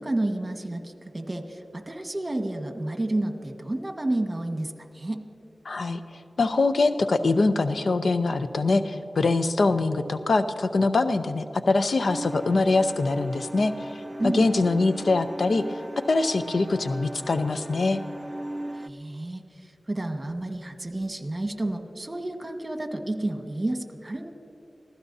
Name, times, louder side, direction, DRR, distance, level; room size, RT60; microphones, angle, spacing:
voice 1, 0.0-5.2 14.2-14.5 18.7-24.3, right 1 dB, 30° right, 5 dB, 1.4 m, -30 dB
voice 2, 5.6-6.0 6.4-13.9 14.2-15.8 16.1-18.0, left 3 dB, 75° left, 9 dB, 0.6 m, -23 dB
sound 1, 12.1-18.9, right 1 dB, 5° right, 0.4 m, -38 dB
27.5 x 15.5 x 2.7 m, 2.6 s
cardioid pair, 50°, 0 cm